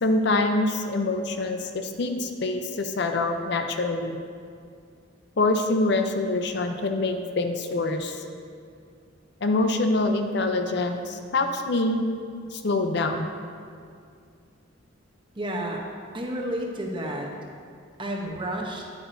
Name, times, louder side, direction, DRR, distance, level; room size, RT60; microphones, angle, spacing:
voice 1, 0.0-4.2 5.4-8.2 9.4-12.0 12.5-13.3, left 2 dB, 55° left, 6 dB, 0.5 m, -25 dB
voice 2, 15.4-15.8 16.1-17.3 18.0-18.8, right 1 dB, 25° right, 0 dB, 0.8 m, -31 dB
10.0 x 8.2 x 2.6 m, 2.3 s
head